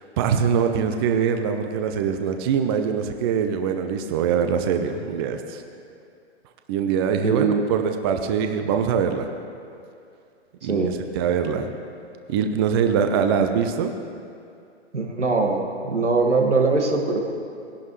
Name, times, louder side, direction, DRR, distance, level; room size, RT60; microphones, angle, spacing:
voice 1, 0.0-5.6 6.7-9.3 10.6-11.7 12.3-13.9, right 7 dB, 20° right, 6 dB, 0.5 m, -23 dB
voice 2, 7.2-7.7 10.6-11.0 14.9-17.2, right 3 dB, 90° right, 1 dB, 2.0 m, -22 dB
18.5 x 11.5 x 3.2 m, 2.5 s
hypercardioid pair, 130°, 34 cm